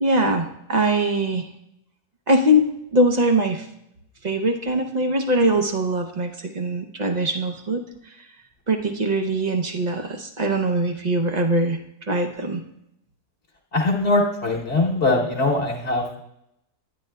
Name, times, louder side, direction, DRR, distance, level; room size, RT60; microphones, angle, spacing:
voice 1, 0.0-1.5 2.3-3.7 4.2-7.8 8.7-11.8 12.1-12.6, right 1 dB, 50° right, 5 dB, 0.5 m, -22 dB
voice 2, 13.7-16.2, left 2 dB, 50° left, -3 dB, 1.2 m, -21 dB
10.5 x 9.5 x 2.2 m, 0.80 s
omnidirectional pair, 1.6 m